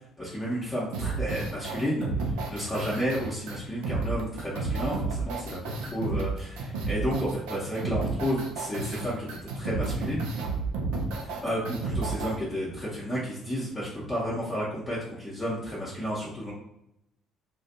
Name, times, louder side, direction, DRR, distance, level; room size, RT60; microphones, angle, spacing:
voice 1, 0.2-10.3 11.2-16.5, equal, 20° left, -8 dB, 0.8 m, -32 dB
sound 1, 0.9-12.4, right 3 dB, 65° right, 0.4 m, -31 dB
2.4 x 2.2 x 2.6 m, 0.81 s
figure-of-eight pair, 50°, 0 cm